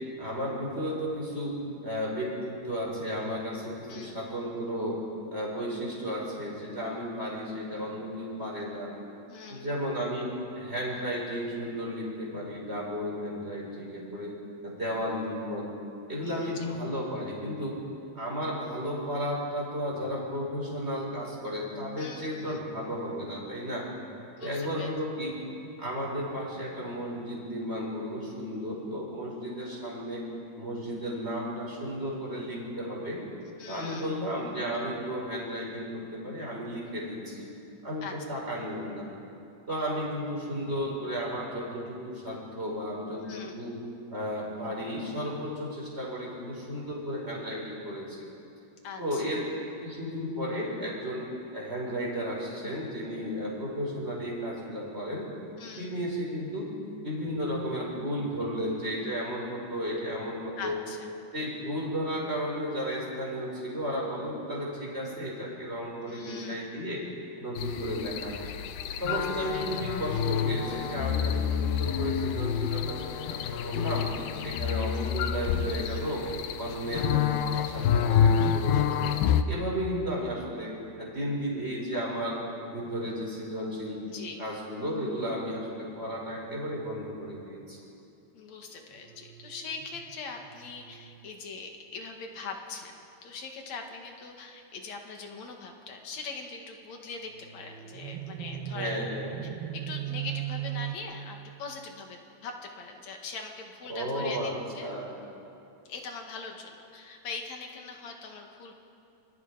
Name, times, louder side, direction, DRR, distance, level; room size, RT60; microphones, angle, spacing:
voice 1, 0.2-1.5 1.8-5.0 5.3-8.9 9.5-14.3 14.6-15.7 16.1-17.7 18.2-23.9 24.4-25.3 25.8-30.2 30.6-33.2 33.7-37.5 37.8-39.0 39.7-43.7 44.1-48.2 49.0-49.4 49.8-51.2 51.5-55.3 55.8-56.7 57.0-60.7 61.3-67.0 67.4-68.3 69.0-74.1 74.4-76.2 76.6-79.1 79.5-84.0 84.4-87.8 98.7-99.3 103.9-104.5 104.8-105.1, equal, 15° right, -3 dB, 5.6 m, -33 dB
voice 2, 3.9-4.3 9.3-9.7 16.2-16.5 22.0-22.6 24.4-24.9 33.6-34.1 38.0-38.4 43.2-43.6 48.8-49.3 55.6-56.0 60.6-61.1 66.0-66.7 69.0-69.3 69.5-69.7 75.6-76.1 84.0-84.4 88.3-99.0 99.7-104.9 105.8-108.7, left 4 dB, 55° left, 2 dB, 2.9 m, -42 dB
sound 1, 67.6-79.4, left 8 dB, 85° left, 2.8 m, -28 dB
sound 2, 89.1-91.3 97.4-101.0, right 12 dB, 80° right, 2.6 m, -38 dB
28.5 x 25.5 x 5.1 m, 2.7 s
omnidirectional pair, 4.3 m